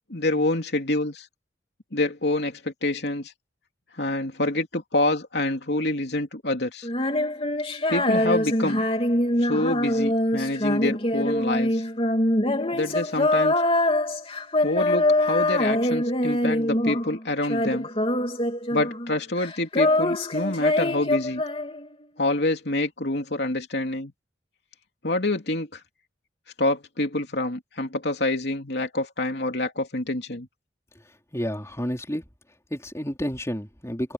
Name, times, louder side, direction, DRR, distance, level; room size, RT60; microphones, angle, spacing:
voice 1, 0.1-1.3 1.9-3.3 4.0-6.9 7.9-8.8 9.4-11.8 12.7-13.5 14.6-17.9 18.7-21.4 22.2-24.1 25.0-25.8 26.6-30.5, left 2 dB, 65° left, 3.2 m, -27 dB
Female singing, 6.8-17.2 17.4-19.1 19.4-22.0, left 1 dB, 30° left, 3.4 m, -24 dB
voice 2, 31.3-32.2 32.7-34.1, equal, 15° left, 3.9 m, -30 dB
open air
head